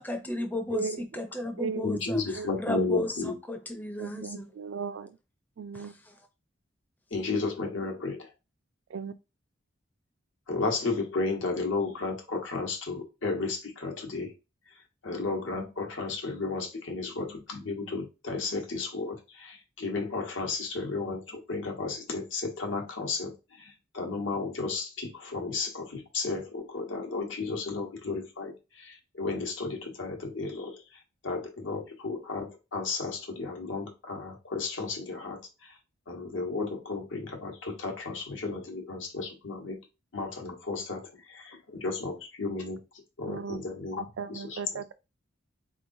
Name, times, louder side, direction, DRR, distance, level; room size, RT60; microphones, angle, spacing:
voice 1, 0.0-2.2 2.6-4.5 5.7-5.9, left 1 dB, 10° left, 0.4 m, -34 dB
voice 2, 0.7-1.0 1.6-1.8 2.3-2.6 4.0-5.2 5.6-5.9 8.9-9.1 43.3-43.6 44.0-44.9, right 5 dB, 75° right, 0.3 m, -36 dB
voice 3, 1.8-3.3 7.1-8.3 10.5-14.3 14.7-35.8 36.1-39.8 40.1-42.8 43.2-44.6, left 3 dB, 75° left, 1.1 m, -33 dB
3.8 x 3.0 x 2.6 m
head